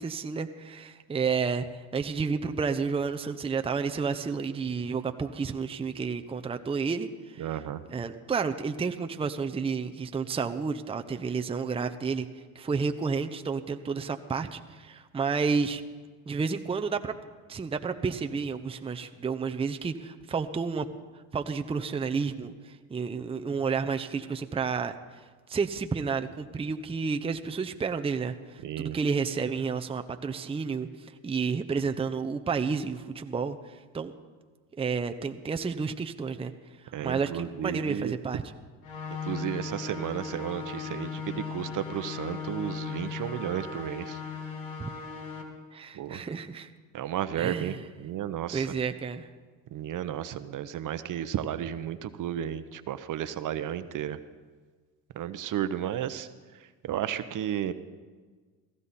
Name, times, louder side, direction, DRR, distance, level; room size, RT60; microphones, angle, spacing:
voice 1, 0.0-1.7 1.9-7.6 7.9-12.3 12.5-15.8 16.3-17.1 17.5-20.9 21.3-24.9 25.5-34.1 34.8-36.5 37.0-38.4 44.8-44.9 45.7-46.7 47.4-47.8 48.5-49.3, right 5 dB, 15° right, 7 dB, 0.7 m, -31 dB
voice 2, 7.4-7.8 28.6-29.0 36.9-38.2 39.2-44.2 45.9-46.2 46.9-48.7 49.7-54.2 55.1-56.3 56.8-57.7, right 10 dB, 50° right, 12 dB, 0.8 m, -33 dB
sound 1, 38.8-45.4, left 6 dB, 85° left, 1.9 m, -37 dB
16.0 x 15.0 x 4.2 m, 1.5 s
supercardioid pair, 80°, 41 cm